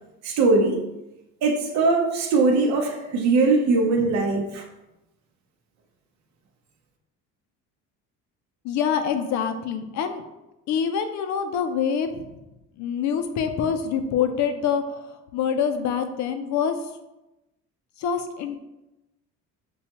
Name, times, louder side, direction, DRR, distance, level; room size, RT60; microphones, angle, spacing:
voice 1, 0.2-0.9 1.4-4.6, right 3 dB, 60° right, 1 dB, 0.7 m, -21 dB
voice 2, 8.6-10.2 10.7-12.2 12.8-14.8 15.3-16.8 18.0-18.6, left 7 dB, 65° left, 7 dB, 0.6 m, -25 dB
6.7 x 2.3 x 2.8 m, 0.97 s
cardioid pair, 125°, 31 cm